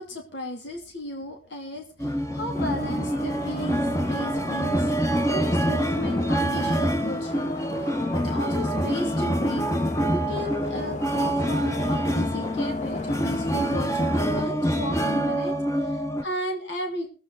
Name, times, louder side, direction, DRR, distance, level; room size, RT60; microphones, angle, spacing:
voice 1, 0.0-4.9 5.2-9.7 10.1-17.1, left 1 dB, 85° left, 2 dB, 2.9 m, -35 dB
sound 1, 2.0-16.2, equal, 15° left, 1.0 m, -26 dB
sound 2, 2.5-14.4, left 2 dB, 40° left, 1.4 m, -37 dB
21.5 x 8.6 x 3.9 m, 0.35 s
head